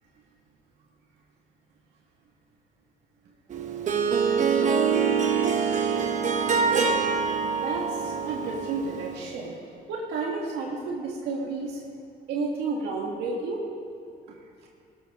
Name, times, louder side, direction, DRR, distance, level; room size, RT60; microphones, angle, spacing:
Harp, 3.5-9.3, right 6 dB, 45° right, 1.1 m, -25 dB
voice 1, 6.7-7.1 7.4-11.8 12.3-13.6, right 3 dB, 80° right, -1 dB, 1.8 m, -32 dB
18.0 x 12.5 x 3.6 m, 2.4 s
cardioid pair, 110°, 17 cm